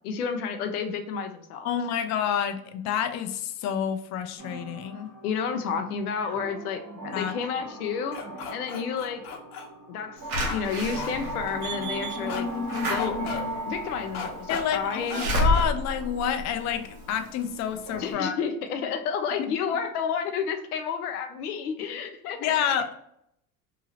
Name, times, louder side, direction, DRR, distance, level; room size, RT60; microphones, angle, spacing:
voice 1, 0.0-1.7 5.2-8.2 8.5-9.2 9.9-10.2 10.5-13.2 13.7-15.2 18.0-22.6, left 6 dB, 85° left, 6 dB, 0.6 m, -31 dB
voice 2, 1.6-5.1 7.1-7.3 14.5-18.4 19.4-19.5 22.4-23.0, left 8 dB, 40° left, 8 dB, 0.5 m, -28 dB
sound 1, 4.4-18.1, equal, 40° right, 1.4 m, -38 dB
sound 2, 8.1-9.7 10.5-10.6 11.0-11.1 12.3-12.4 12.7-13.4 14.1-14.6 15.1-15.3 15.5-15.7, left 5 dB, 60° left, 0.9 m, -35 dB
Slam / Alarm, 10.3-17.1 17.6-17.7 17.9-18.0, left 1 dB, 85° right, 1.0 m, -30 dB
2.9 x 2.7 x 2.8 m, 0.75 s
hypercardioid pair, 75°, 44 cm